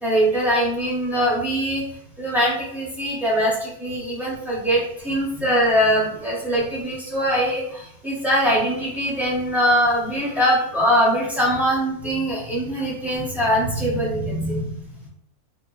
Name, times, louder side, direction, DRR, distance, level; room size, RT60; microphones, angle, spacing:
voice 1, 0.0-1.8 2.2-14.8, equal, ahead, -7 dB, 0.4 m, -22 dB
2.8 x 2.2 x 2.3 m, 0.74 s
omnidirectional pair, 1.7 m